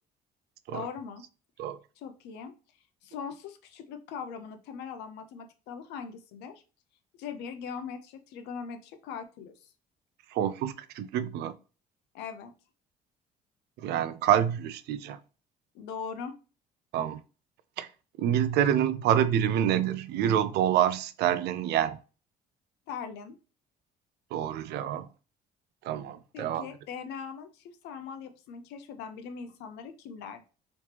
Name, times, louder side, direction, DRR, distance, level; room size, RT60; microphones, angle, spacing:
voice 1, 0.7-1.2 2.0-2.5 3.0-6.5 7.2-9.7 11.0-11.1 12.1-12.5 15.7-16.3 22.9-23.4 26.3-30.5, left 6 dB, 90° left, 0.6 m, -40 dB
voice 2, 10.3-11.5 13.8-15.2 16.9-17.2 17.8-17.9 18.2-22.0 24.3-25.1 25.8-26.7, right 10 dB, 75° right, 0.4 m, -27 dB
3.2 x 3.1 x 2.9 m
cardioid pair, 110°, 17 cm